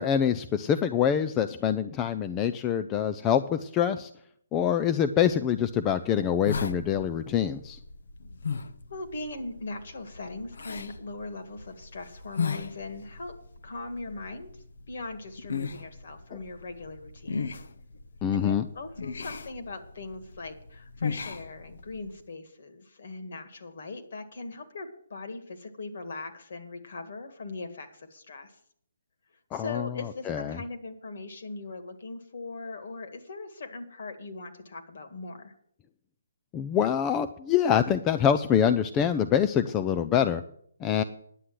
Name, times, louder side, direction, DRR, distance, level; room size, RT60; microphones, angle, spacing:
voice 1, 0.0-4.1 4.5-7.8 18.2-18.7 29.5-30.6 36.5-40.4 40.8-41.0, left 9 dB, 15° left, 10 dB, 0.4 m, -25 dB
sound 1, 5.6-22.2, left 5 dB, 65° left, 0.8 m, -38 dB
voice 2, 8.9-13.4 13.6-14.5 14.9-17.6 18.3-28.6 29.5-35.6, left 3 dB, 50° left, 7 dB, 1.8 m, -40 dB
10.0 x 8.0 x 7.6 m, 0.66 s
hypercardioid pair, 170°, 0 cm